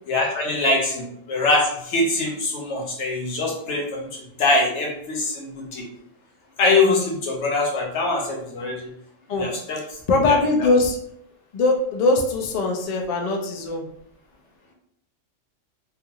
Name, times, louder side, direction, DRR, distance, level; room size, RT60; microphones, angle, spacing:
voice 1, 0.1-5.8 6.6-8.9 9.4-9.8 10.3-10.4, left 2 dB, 70° left, -1 dB, 1.0 m, -23 dB
voice 2, 9.3-11.0 11.5-13.9, left 3 dB, 85° left, 2 dB, 0.3 m, -21 dB
2.4 x 2.4 x 2.8 m, 0.71 s
omnidirectional pair, 1.3 m